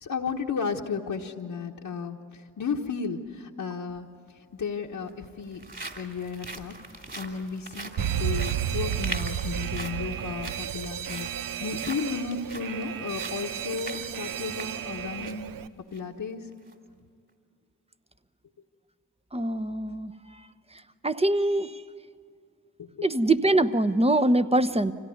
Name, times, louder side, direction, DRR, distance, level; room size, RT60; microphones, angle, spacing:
voice 1, 0.0-2.2 2.6-4.1 4.5-5.6 6.0-6.7 7.2-11.3 11.6-15.5 15.9-16.4 22.8-23.1, left 5 dB, 65° left, -1 dB, 1.4 m, -33 dB
sound 1, 3.9-4.0 4.9-15.5 15.9-16.0 16.5-16.7, right 2 dB, 35° right, 3.2 m, -42 dB
Alarm, 8.0-15.7, right 10 dB, 65° right, 0.8 m, -32 dB
voice 2, 19.3-20.1 21.0-21.7 23.0-24.9, right 2 dB, 15° right, 12 dB, 1.0 m, -23 dB
25.5 x 17.0 x 9.5 m, 2.3 s
supercardioid pair, 40°, 36 cm